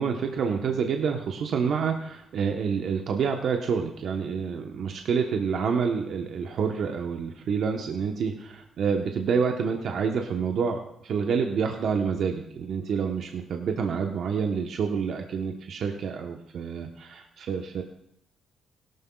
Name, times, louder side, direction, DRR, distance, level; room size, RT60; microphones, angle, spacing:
voice 1, 0.0-17.8, right 6 dB, 65° right, 3 dB, 1.0 m, -28 dB
17.0 x 12.0 x 2.3 m, 0.76 s
supercardioid pair, 55°, 0 cm